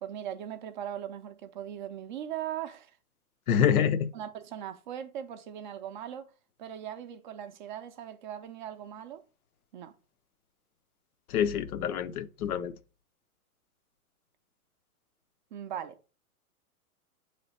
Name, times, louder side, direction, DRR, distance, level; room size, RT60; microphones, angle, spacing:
voice 1, 0.0-3.0 4.1-6.3 6.6-9.2 9.7-9.9 15.5-16.0, right 10 dB, 35° right, 0.4 m, -39 dB
voice 2, 3.5-4.1 11.3-12.7, left 8 dB, 75° left, 0.7 m, -26 dB
7.9 x 3.2 x 4.1 m
hypercardioid pair, 130°, 45 cm